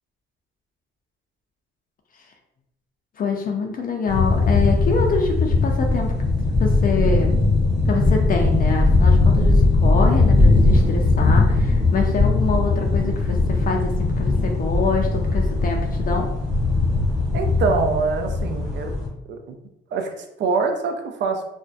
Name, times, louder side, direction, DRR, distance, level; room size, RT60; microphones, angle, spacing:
voice 1, 3.2-6.1 6.6-7.3 7.9-16.3, left 4 dB, 45° left, 2 dB, 0.4 m, -25 dB
sound 1, 4.1-19.1, left 3 dB, ahead, 0.8 m, -19 dB
voice 2, 17.3-18.9 19.3-19.5 19.9-21.4, right 4 dB, 65° right, 5 dB, 0.4 m, -24 dB
2.6 x 2.1 x 2.3 m, 0.85 s
cardioid pair, 90°, 20 cm